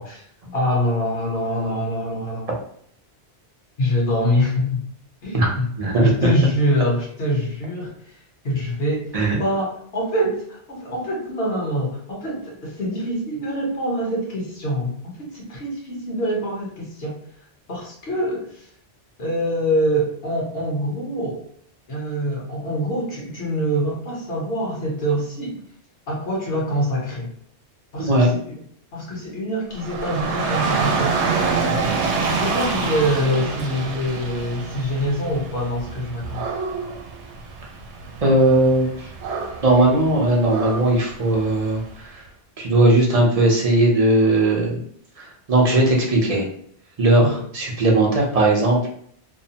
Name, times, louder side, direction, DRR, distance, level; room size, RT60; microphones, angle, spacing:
voice 1, 0.0-2.5 3.8-4.8 5.2-5.7 6.0-8.2 8.4-17.2 17.7-18.7 19.2-21.4 21.9-25.6 26.1-27.3 27.9-28.3 28.9-31.3 32.2-36.4 40.3-40.4 47.2-47.3, equal, 60° left, -3 dB, 1.1 m, -24 dB
voice 2, 5.8-6.1 9.1-9.4 28.0-28.3 38.2-39.1 39.6-42.2 42.6-44.8 45.2-46.4 47.0-48.9, right 2 dB, 40° right, -1 dB, 0.6 m, -18 dB
Dog / Rain, 29.7-41.9, right 4 dB, 80° right, 0.8 m, -27 dB
2.7 x 2.0 x 2.7 m, 0.63 s
omnidirectional pair, 1.1 m